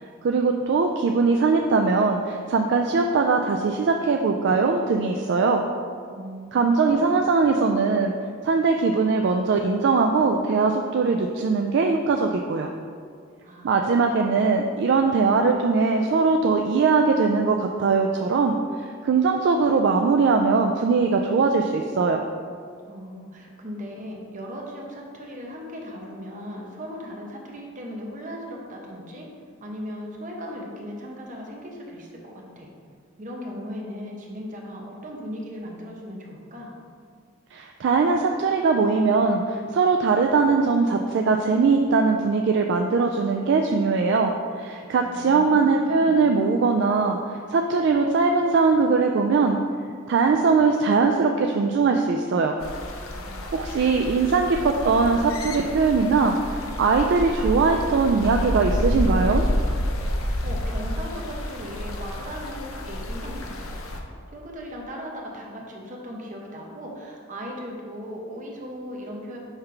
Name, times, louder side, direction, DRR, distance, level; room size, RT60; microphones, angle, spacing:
voice 1, 0.2-5.6 6.5-8.1 8.4-12.7 13.6-18.6 19.0-22.2 37.5-47.2 47.5-49.6 50.1-52.6 53.5-59.4, right 4 dB, 55° right, 3 dB, 0.3 m, -21 dB
voice 2, 6.1-7.1 13.4-13.7 22.9-29.2 29.6-32.7 33.2-36.7 45.0-46.3 53.1-53.5 53.8-53.9 60.4-63.8 64.3-69.4, equal, 40° right, -1 dB, 0.9 m, -37 dB
sound 1, 52.6-64.0, left 1 dB, 80° left, 0.7 m, -29 dB
5.7 x 3.3 x 5.7 m, 2.1 s
head